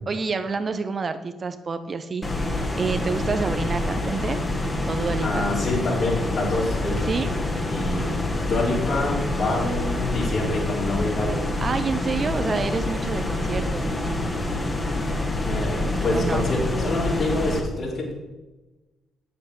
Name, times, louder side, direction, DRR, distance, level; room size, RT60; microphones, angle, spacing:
voice 1, 0.1-4.4 4.9-5.4 7.1-7.3 11.6-14.2 16.1-16.4, right 4 dB, 40° right, 9 dB, 0.8 m, -28 dB
sound 1, 2.2-17.6, left 2 dB, 20° left, 2.1 m, -27 dB
voice 2, 5.2-7.1 7.7-8.1 8.4-11.5 15.4-18.1, left 2 dB, 50° left, -4 dB, 4.3 m, -26 dB
9.6 x 7.6 x 6.0 m, 1.1 s
figure-of-eight pair, 45°, 0 cm